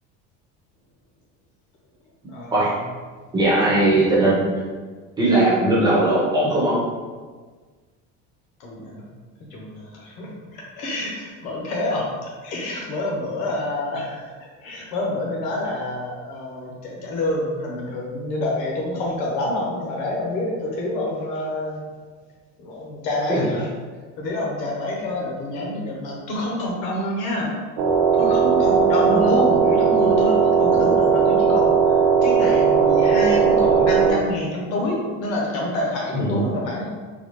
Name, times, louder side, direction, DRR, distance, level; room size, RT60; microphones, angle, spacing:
voice 1, 2.3-2.8 8.6-9.0 9.5-14.3 14.6-21.8 22.6-23.7 24.2-27.6 28.1-36.9, left 1 dB, 90° left, -2 dB, 1.1 m, -27 dB
voice 2, 3.3-4.5 5.2-6.8 23.3-23.4 29.1-29.2 36.1-36.4, right 1 dB, 15° right, -8 dB, 0.9 m, -19 dB
sound 1, 27.8-34.1, right 6 dB, 80° right, 0.9 m, -17 dB
3.9 x 2.3 x 3.1 m, 1.4 s
cardioid pair, 170°, 31 cm